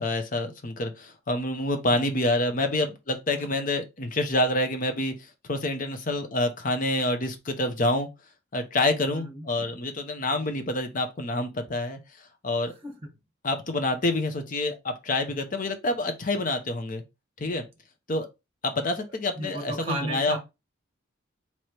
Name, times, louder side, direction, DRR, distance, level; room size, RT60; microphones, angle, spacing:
voice 1, 0.0-5.1 5.4-8.1 8.5-12.7 13.4-17.0 17.4-17.6 18.1-18.3 18.6-20.4, left 2 dB, 40° left, 0.7 m, -27 dB
voice 2, 9.1-9.7 10.2-10.5 12.8-13.1 19.4-20.4, right 2 dB, 30° right, 1.1 m, -35 dB
3.2 x 2.9 x 4.4 m
head